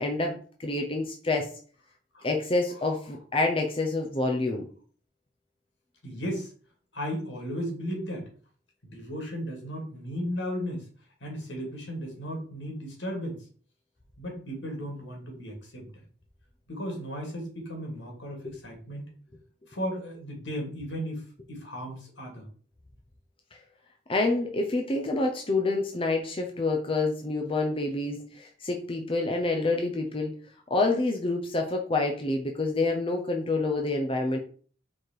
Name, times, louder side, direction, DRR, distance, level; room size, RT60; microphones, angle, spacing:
voice 1, 0.0-1.5 2.2-4.7 18.4-18.5 24.1-30.3 30.7-34.4, left 2 dB, 30° left, 2 dB, 0.8 m, -27 dB
voice 2, 6.0-6.5 6.9-8.3 8.8-10.9 11.2-13.5 14.2-15.9 16.7-19.0 19.7-22.5, equal, 75° left, 1 dB, 2.6 m, -35 dB
4.8 x 4.3 x 4.5 m, 0.43 s
head